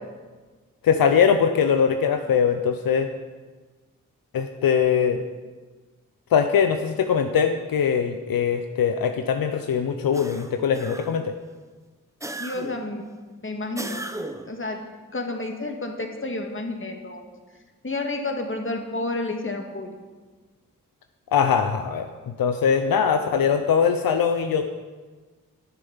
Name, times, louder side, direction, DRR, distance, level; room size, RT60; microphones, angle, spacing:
voice 1, 0.8-3.1 4.3-5.2 6.3-11.3 21.3-24.7, left 7 dB, 80° left, 7 dB, 0.6 m, -21 dB
sound 1, 10.1-11.3 12.2-12.9 13.8-14.6, right 1 dB, 10° right, 0.7 m, -36 dB
voice 2, 12.4-13.1 13.4-14.0 14.5-14.8 15.1-17.3 17.8-19.9, left 2 dB, 35° left, 3 dB, 1.7 m, -30 dB
9.0 x 7.0 x 7.1 m, 1.4 s
cardioid pair, 40°, 35 cm